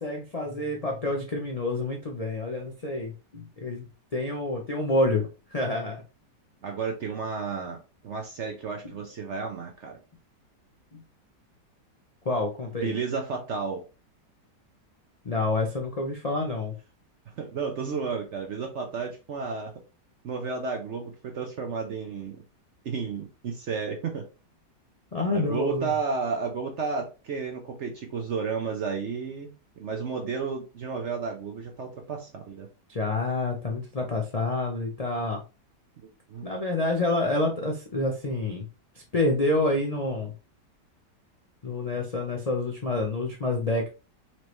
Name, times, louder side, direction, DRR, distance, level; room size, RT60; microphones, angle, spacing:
voice 1, 0.0-3.9 4.1-6.0 10.9-11.0 12.2-12.9 15.2-16.7 25.1-25.9 32.9-35.4 36.4-38.7 39.1-40.3 41.6-43.9, left 2 dB, 70° left, 0 dB, 0.3 m, -28 dB
voice 2, 6.6-10.0 12.8-13.8 17.4-19.7 20.2-22.4 22.8-24.3 25.3-32.7 36.0-36.5, right 5 dB, 60° right, 3 dB, 0.7 m, -32 dB
4.5 x 3.2 x 3.0 m, 0.30 s
omnidirectional pair, 1.9 m